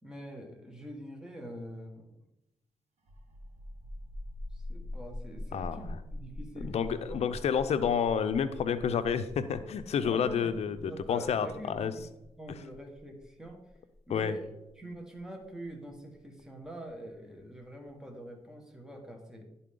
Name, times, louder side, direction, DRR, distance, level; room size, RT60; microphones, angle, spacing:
voice 1, 0.0-2.1 4.5-7.2 10.0-12.1 12.4-13.6 14.1-19.5, right 1 dB, 5° right, 2 dB, 1.6 m, -45 dB
sound 1, 3.0-16.4, left 1 dB, 70° right, 1.7 m, -44 dB
voice 2, 5.5-5.8 6.6-11.9 14.1-14.4, left 7 dB, 70° left, 11 dB, 0.6 m, -29 dB
10.5 x 4.1 x 3.8 m, 0.91 s
cardioid pair, 65°, 11 cm